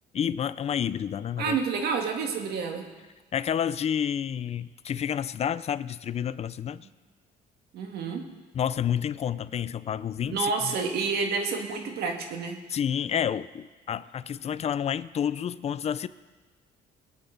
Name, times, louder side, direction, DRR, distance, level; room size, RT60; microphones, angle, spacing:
voice 1, 0.1-1.6 3.3-6.9 8.5-10.7 12.7-16.1, left 9 dB, 40° left, 15 dB, 0.5 m, -29 dB
voice 2, 1.4-2.8 7.7-8.2 10.3-12.6, right 5 dB, 70° right, 3 dB, 1.9 m, -29 dB
22.5 x 8.4 x 4.0 m, 1.3 s
cardioid pair, 110°, 17 cm